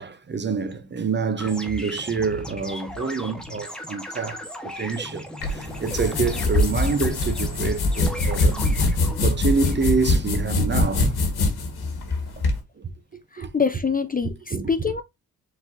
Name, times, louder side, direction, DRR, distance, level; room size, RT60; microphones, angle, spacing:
voice 1, 0.0-8.9 9.2-11.1 12.4-12.5 12.8-13.5 14.5-14.7, right 5 dB, 30° right, 0.6 m, -27 dB
sound 1, 1.4-10.1, equal, ahead, 1.1 m, -37 dB
sound 2, 5.4-12.6, left 2 dB, 80° left, 1.3 m, -23 dB
voice 2, 13.3-15.0, left 5 dB, 25° left, 0.4 m, -25 dB
4.8 x 4.1 x 2.5 m
cardioid pair, 100°, 38 cm